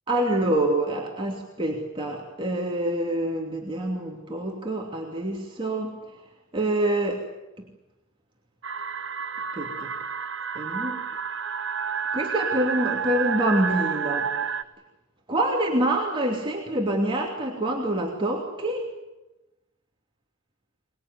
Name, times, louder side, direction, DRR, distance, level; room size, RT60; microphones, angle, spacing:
voice 1, 0.1-6.0 6.5-7.3 7.6-7.7 9.5-9.9 10.5-11.0 12.1-14.3 15.3-18.9, right 1 dB, 25° right, -1 dB, 2.8 m, -26 dB
sound 1, 8.6-14.6, right 6 dB, 60° right, 1.1 m, -30 dB
24.5 x 20.5 x 9.5 m, 1.0 s
head